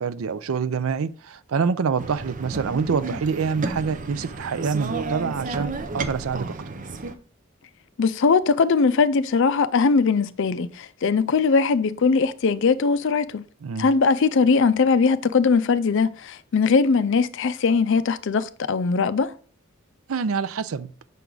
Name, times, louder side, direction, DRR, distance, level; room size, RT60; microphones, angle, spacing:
voice 1, 0.0-6.5 13.6-13.9 20.1-20.9, right 5 dB, 80° right, 0.5 m, -26 dB
sound 1, 2.0-7.1, right 3 dB, 40° right, 0.6 m, -32 dB
voice 2, 8.0-13.4 13.8-19.3, left 5 dB, 60° left, 0.4 m, -20 dB
6.8 x 4.6 x 3.9 m
head